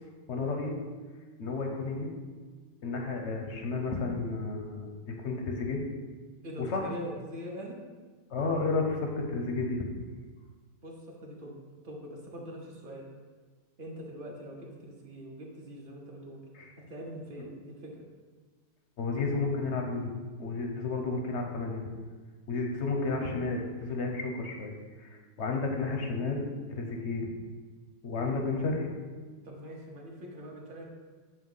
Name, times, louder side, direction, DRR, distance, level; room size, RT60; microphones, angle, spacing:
voice 1, 0.3-0.7 1.4-2.1 2.8-5.8 6.6-6.9 8.3-9.9 16.6-16.7 19.0-21.8 22.5-24.7 25.0-26.5 26.7-27.3 28.0-28.9, left 3 dB, 55° left, 2 dB, 0.8 m, -32 dB
voice 2, 6.4-7.8 10.8-11.6 11.8-13.1 13.8-16.4 16.8-18.1 29.4-30.9, equal, 40° right, -2 dB, 0.9 m, -43 dB
7.7 x 2.9 x 5.4 m, 1.4 s
omnidirectional pair, 1.9 m